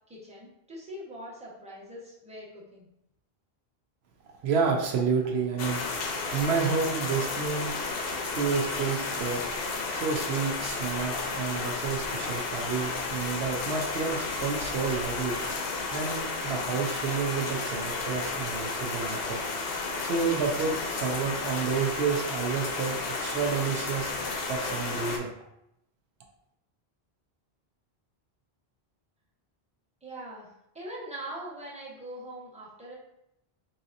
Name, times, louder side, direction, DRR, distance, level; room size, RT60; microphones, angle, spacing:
voice 1, 0.1-2.9 30.0-33.0, right 1 dB, 5° right, -6 dB, 0.8 m, -42 dB
voice 2, 4.4-7.7 8.3-9.4 9.9-15.4 15.9-19.4 20.0-25.3, right 5 dB, 80° right, 1 dB, 0.8 m, -30 dB
sound 1, 5.6-25.2, left 3 dB, 70° left, 0.8 m, -32 dB
3.9 x 2.7 x 2.5 m, 0.82 s
omnidirectional pair, 1.1 m